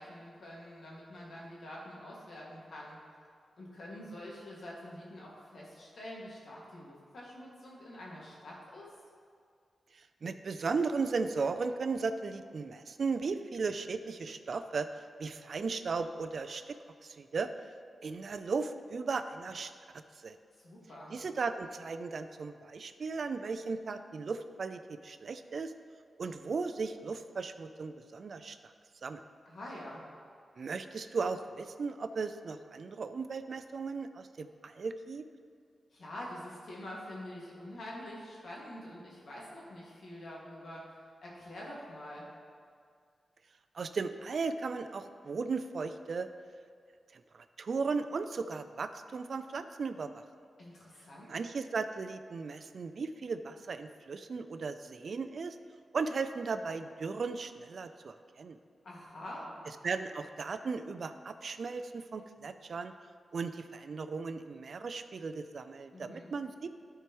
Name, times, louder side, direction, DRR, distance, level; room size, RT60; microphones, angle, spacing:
voice 1, 0.0-3.2 3.6-8.9 20.5-21.1 29.5-30.0 35.9-42.3 50.6-51.4 58.8-59.6 65.9-66.3, left 1 dB, 70° left, -5 dB, 1.9 m, -46 dB
voice 2, 10.2-14.9 15.2-16.8 17.0-17.5 18.0-19.7 20.2-20.4 21.1-25.7 26.2-28.6 29.0-29.2 30.6-35.2 43.7-46.3 47.1-50.2 51.3-55.6 55.9-58.6 59.8-62.9 63.3-66.7, right 4 dB, 60° right, 9 dB, 0.3 m, -36 dB
12.5 x 4.6 x 3.0 m, 2.2 s
wide cardioid pair, 110°, 0 cm